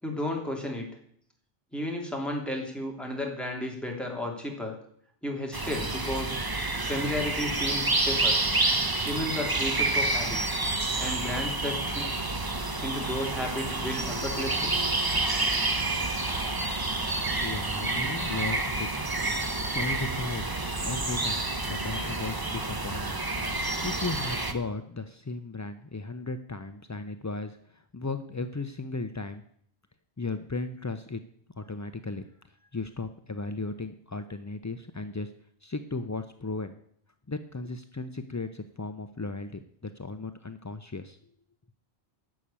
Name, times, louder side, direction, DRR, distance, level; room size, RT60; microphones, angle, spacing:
voice 1, 0.0-0.9 1.7-4.7 5.2-6.4 6.8-8.4 9.0-10.4 11.0-12.1 12.8-14.7, left 1 dB, ahead, 0 dB, 3.0 m, -33 dB
sound 1, 5.5-24.5, right 2 dB, 20° right, 0.9 m, -29 dB
voice 2, 17.4-18.9 19.6-20.5 20.8-23.2 23.8-29.4 30.2-31.2 31.6-35.3 35.6-36.7 37.3-41.2, left 3 dB, 30° left, 9 dB, 0.3 m, -36 dB
11.0 x 6.9 x 8.7 m, 0.65 s
omnidirectional pair, 1.1 m